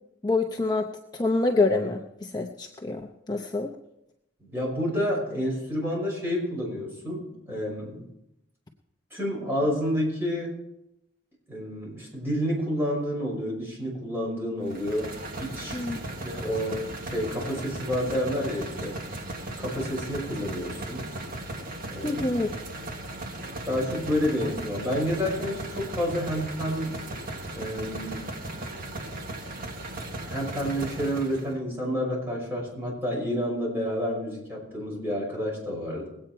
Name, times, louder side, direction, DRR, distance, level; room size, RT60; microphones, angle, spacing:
voice 1, 0.2-0.9 1.1-3.0 3.3-3.7 15.7-16.0 22.0-22.5, left 3 dB, 20° left, 2 dB, 0.7 m, -26 dB
voice 2, 4.4-8.0 9.1-10.5 11.5-15.1 15.4-15.9 16.2-16.8 17.1-19.0 19.6-21.1 21.9-22.3 23.7-27.0 27.6-28.3 30.2-36.1, equal, 10° right, -4 dB, 5.8 m, -29 dB
sound 1, 14.7-31.6, right 1 dB, 50° right, 1.4 m, -37 dB
21.0 x 8.8 x 4.5 m, 0.84 s
head